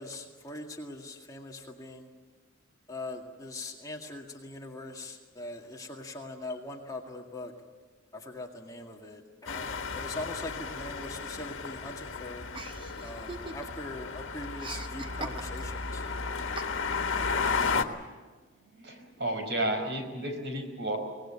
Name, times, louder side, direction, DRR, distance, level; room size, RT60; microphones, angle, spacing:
voice 1, 0.0-2.1 2.9-7.5 8.1-12.5 13.0-16.0, left 2 dB, 20° left, 1 dB, 2.1 m, -41 dB
sound 1, 9.5-17.8, left 4 dB, 85° left, 1.5 m, -33 dB
Chuckle chortle, 12.5-13.9 14.2-15.8 16.6-17.1, right 3 dB, 25° right, 1.0 m, -42 dB
voice 2, 18.6-21.0, right 1 dB, 60° right, 5 dB, 4.8 m, -32 dB
24.0 x 19.5 x 8.7 m, 1.4 s
head